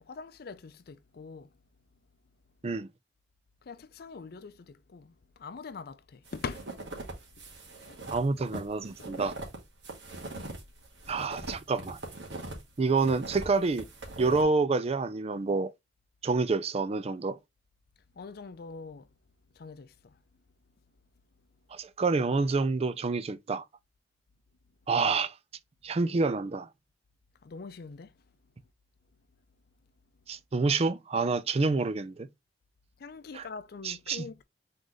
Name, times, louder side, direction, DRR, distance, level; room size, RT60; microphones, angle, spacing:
voice 1, 0.0-1.5 3.6-6.7 7.9-8.0 18.1-19.1 19.5-20.2 27.4-28.2 33.0-34.4, left 4 dB, 60° left, 0.5 m, -43 dB
sound 1, 6.3-12.6 13.0-14.4, right 2 dB, 85° right, 1.7 m, -41 dB
voice 2, 8.1-9.4 11.1-12.0 12.8-13.9 14.2-15.7 16.2-17.4 21.7-23.6 24.9-25.3 25.8-26.7 30.3-32.3 33.3-33.4 33.8-34.3, right 4 dB, 35° right, 0.4 m, -28 dB
3.9 x 3.8 x 3.1 m
head